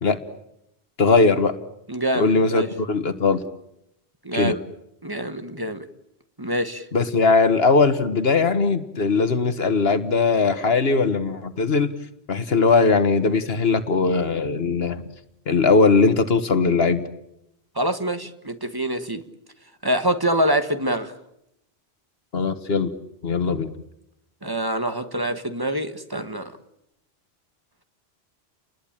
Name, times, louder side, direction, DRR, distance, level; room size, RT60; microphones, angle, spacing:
voice 1, 1.0-1.5 2.1-3.4 4.3-4.5 6.9-11.9 12.3-15.0 15.5-17.0 22.3-22.9 23.2-23.7, left 4 dB, 70° left, 1.6 m, -19 dB
voice 2, 1.9-2.7 4.2-4.6 5.0-5.8 6.4-6.8 17.7-19.2 19.8-21.1 24.4-26.5, right 1 dB, 20° right, 1.5 m, -25 dB
30.0 x 20.5 x 8.9 m
omnidirectional pair, 1.1 m